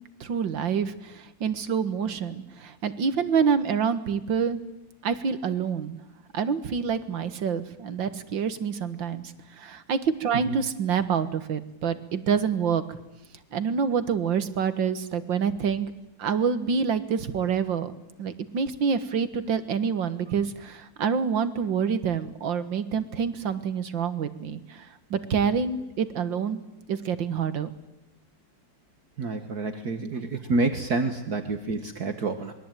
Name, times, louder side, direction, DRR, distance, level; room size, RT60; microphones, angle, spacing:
voice 1, 0.2-4.6 5.0-6.0 6.3-9.2 9.6-12.8 13.5-15.9 16.2-17.9 18.2-26.6 26.9-27.7, right 6 dB, 70° right, 12 dB, 2.2 m, -27 dB
voice 2, 29.2-32.5, right 3 dB, 50° right, 8 dB, 1.9 m, -28 dB
27.0 x 22.0 x 9.1 m, 0.90 s
omnidirectional pair, 2.2 m